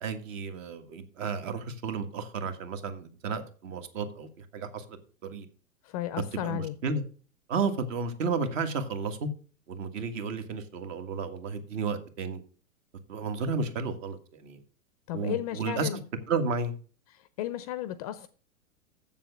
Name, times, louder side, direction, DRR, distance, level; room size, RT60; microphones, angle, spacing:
voice 1, 0.0-5.5 6.4-7.0 7.5-9.3 9.7-12.4 13.1-14.6 15.1-15.9 16.3-16.7, right 4 dB, 60° right, 1.8 m, -32 dB
voice 2, 5.8-6.8 15.1-16.0 17.1-18.3, left 13 dB, 30° left, 0.4 m, -34 dB
7.4 x 7.2 x 6.8 m
hypercardioid pair, 130°, 44 cm